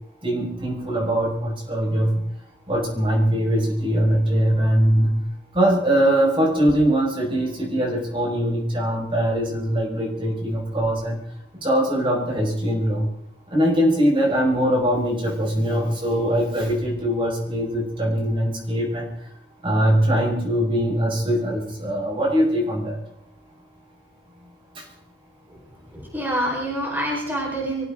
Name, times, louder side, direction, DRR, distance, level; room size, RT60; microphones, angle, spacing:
voice 1, 0.2-2.1 2.7-5.1 5.5-11.2 11.6-13.1 13.5-19.0 19.6-23.0, equal, 30° right, -1 dB, 5.4 m, -21 dB
voice 2, 25.9-27.9, right 1 dB, 10° right, -2 dB, 4.8 m, -26 dB
24.0 x 15.5 x 3.8 m, 0.77 s
head